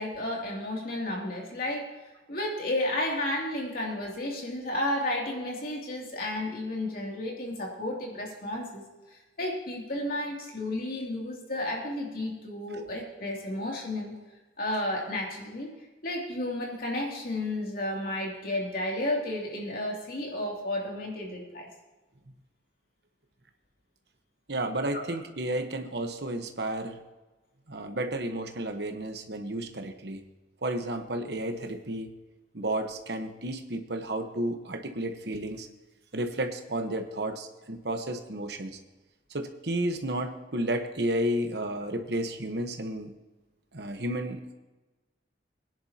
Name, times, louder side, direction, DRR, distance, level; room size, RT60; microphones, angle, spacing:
voice 1, 0.0-1.9 2.3-8.8 9.1-14.2 14.6-15.7 16.0-21.7 24.9-25.0, left 1 dB, 55° left, -1 dB, 2.8 m, -32 dB
voice 2, 24.5-27.0 27.7-30.2 30.6-32.1 32.5-35.7 36.1-38.8 39.3-43.1 43.7-44.5, right 1 dB, 65° right, 6 dB, 1.2 m, -32 dB
21.5 x 10.5 x 2.9 m, 1.2 s
head